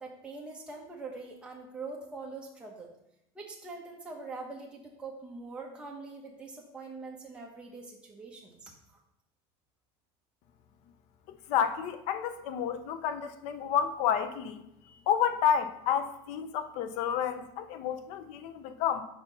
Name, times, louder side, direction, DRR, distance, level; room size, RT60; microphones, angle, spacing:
voice 1, 0.0-2.9 3.3-8.7, right 3 dB, 10° right, -2 dB, 1.0 m, -43 dB
voice 2, 11.3-14.6 15.1-19.0, left 8 dB, 65° left, 10 dB, 0.7 m, -30 dB
5.0 x 4.4 x 5.6 m, 0.79 s
supercardioid pair, 130°, 13 cm